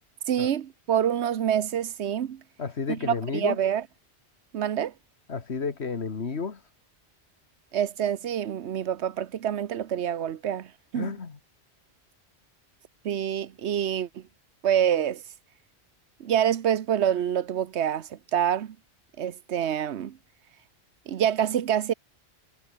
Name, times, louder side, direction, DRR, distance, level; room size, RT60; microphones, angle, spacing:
voice 1, 0.3-2.4 2.9-3.8 4.5-4.9 7.7-11.1 13.0-14.2 14.6-15.2 16.2-18.8 19.2-20.2 21.1-21.9, right 9 dB, 90° right, 1.1 m, -26 dB
voice 2, 2.6-3.6 5.3-6.6 11.0-11.4, left 5 dB, 75° left, 1.9 m, -31 dB
omnidirectional pair, 1.1 m